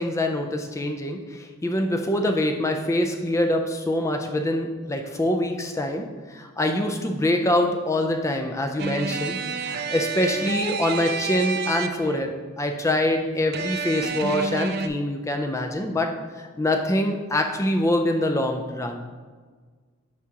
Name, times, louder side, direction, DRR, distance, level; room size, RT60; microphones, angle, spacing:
voice 1, 0.0-12.3 12.6-16.1 16.4-19.0, left 1 dB, 15° left, 4 dB, 0.3 m, -25 dB
sound 1, 8.8-12.3 13.5-14.9, right 5 dB, 50° right, 0.4 m, -29 dB
10.5 x 3.6 x 2.8 m, 1.5 s
head